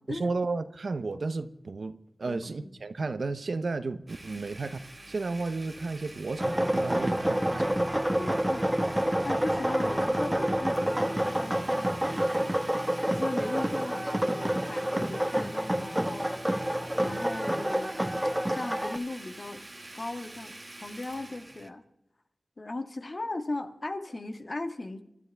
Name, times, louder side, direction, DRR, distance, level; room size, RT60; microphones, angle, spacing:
voice 1, 0.1-7.8 9.5-9.6, right 3 dB, 80° right, 0.8 m, -33 dB
voice 2, 2.2-2.7 4.4-4.5 8.2-12.8 13.1-16.4 17.0-18.0 18.5-19.7 19.9-21.8 22.6-25.0, left 2 dB, 55° left, 1.6 m, -38 dB
Domestic sounds home sounds, 4.1-21.7, right 1 dB, 35° right, 1.4 m, -47 dB
sound 1, 6.4-19.0, right 1 dB, 15° right, 1.1 m, -28 dB
25.0 x 12.5 x 3.5 m
cardioid pair, 40°, 0 cm